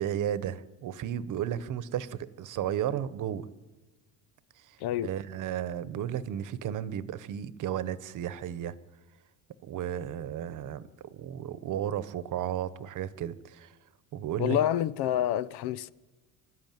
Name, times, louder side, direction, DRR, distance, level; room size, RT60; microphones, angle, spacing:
voice 1, 0.0-3.5 4.6-8.8 9.6-13.8 14.1-14.6, right 10 dB, 50° right, 1.1 m, -34 dB
voice 2, 4.8-5.1 14.4-15.9, left 12 dB, 75° left, 0.8 m, -28 dB
25.5 x 13.0 x 9.3 m
cardioid pair, 140°, 39 cm